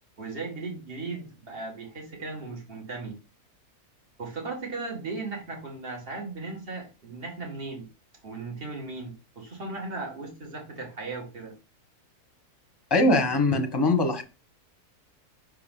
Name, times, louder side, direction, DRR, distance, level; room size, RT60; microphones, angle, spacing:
voice 1, 0.2-3.2 4.2-7.9 8.2-11.6 13.5-13.6, right 3 dB, 40° right, 0 dB, 2.2 m, -37 dB
voice 2, 12.9-14.2, left 2 dB, 20° left, 3 dB, 1.1 m, -22 dB
5.8 x 4.5 x 3.7 m, 0.31 s
omnidirectional pair, 1.6 m